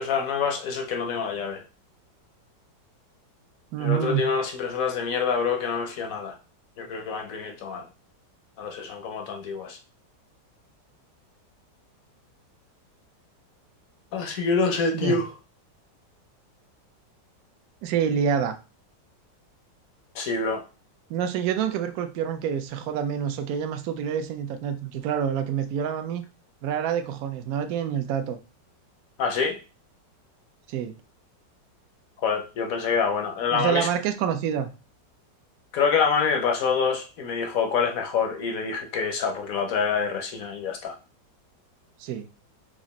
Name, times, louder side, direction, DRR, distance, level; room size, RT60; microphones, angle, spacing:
voice 1, 0.0-1.6 3.8-6.4 6.8-7.8 8.6-9.8 14.1-15.3 20.1-20.6 29.2-29.6 32.2-33.9 35.7-41.0, left 5 dB, 65° left, 0.9 m, -26 dB
voice 2, 3.7-4.3 14.9-15.2 17.8-18.5 21.1-26.2 26.6-28.4 30.7-30.9 33.5-34.7 42.0-42.3, right 8 dB, 65° right, 1.0 m, -27 dB
4.9 x 2.5 x 4.1 m
omnidirectional pair, 1.9 m